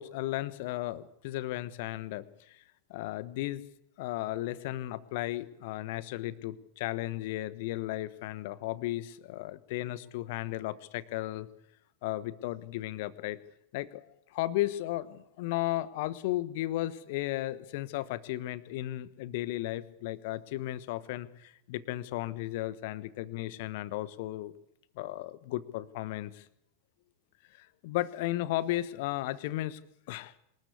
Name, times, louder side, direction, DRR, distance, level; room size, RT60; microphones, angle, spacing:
voice 1, 0.0-2.6 2.9-3.6 4.0-11.5 12.0-13.4 13.7-24.5 25.0-26.4 27.5-29.8 30.1-30.3, left 16 dB, 50° left, 18 dB, 1.1 m, -35 dB
26.0 x 13.5 x 8.5 m, 0.79 s
figure-of-eight pair, 90°, 0 cm